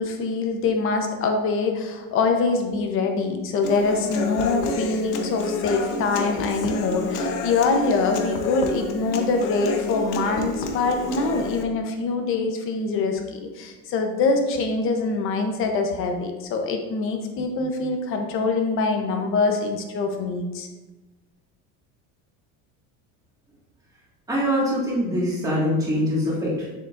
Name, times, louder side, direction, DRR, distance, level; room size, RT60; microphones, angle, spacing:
voice 1, 0.0-20.7, left 4 dB, 40° left, 4 dB, 0.8 m, -24 dB
Human voice / Acoustic guitar, 3.6-11.6, left 2 dB, 90° left, 1.0 m, -29 dB
voice 2, 24.3-26.8, equal, 10° right, -6 dB, 1.9 m, -23 dB
7.4 x 6.8 x 2.5 m, 1.1 s
cardioid pair, 170°, 35 cm